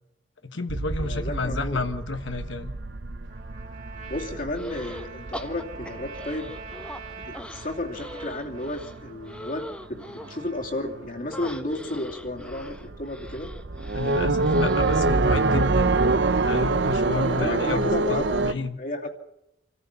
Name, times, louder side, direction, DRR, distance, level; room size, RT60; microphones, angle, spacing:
voice 1, 0.4-2.7 13.9-16.0 16.4-18.8, left 3 dB, 75° left, 8 dB, 1.3 m, -31 dB
sound 1, 0.7-9.6 9.9-10.6 10.9-11.1 11.4-18.5, right 3 dB, 60° right, 0.8 m, -26 dB
voice 2, 1.0-1.8 4.1-6.5 7.2-9.6 9.9-13.5 17.1-19.1, left 1 dB, 45° left, 1 dB, 2.7 m, -32 dB
Trumpet, 3.3-11.4, right 4 dB, 40° right, 2.8 m, -45 dB
sound 2, 4.5-5.1 5.3-7.0 7.3-10.4 11.3-15.0, equal, 5° left, 1.3 m, -41 dB
27.0 x 14.0 x 7.0 m, 0.86 s
head